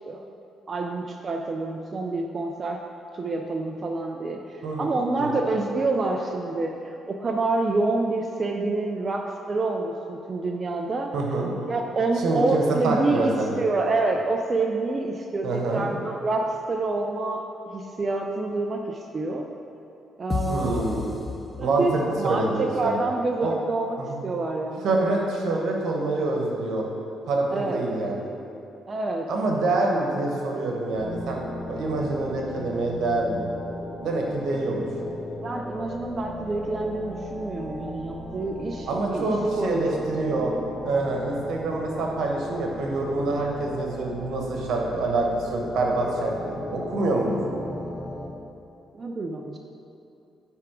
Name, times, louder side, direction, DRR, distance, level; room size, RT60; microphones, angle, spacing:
voice 1, 0.7-2.8 3.1-11.1 11.7-17.4 17.7-19.5 20.2-21.0 21.6-24.0 24.2-24.8 27.5-27.8 28.9-29.3 35.4-40.1 48.9-49.6, right 3 dB, 35° right, 2 dB, 0.4 m, -27 dB
voice 2, 4.6-5.3 11.1-11.5 12.2-13.6 15.4-15.9 20.5-21.1 21.6-23.0 23.4-23.5 24.0-24.2 24.8-26.9 27.3-28.3 29.3-33.5 34.0-34.9 38.9-40.5 40.8-47.4, right 2 dB, 75° right, 0 dB, 1.1 m, -26 dB
sound 1, 20.3-22.1, left 4 dB, 30° left, 0.4 m, -32 dB
sound 2, 30.9-48.3, left 1 dB, 50° left, 1.1 m, -37 dB
9.4 x 3.5 x 5.0 m, 2.7 s
cardioid pair, 90°, 0 cm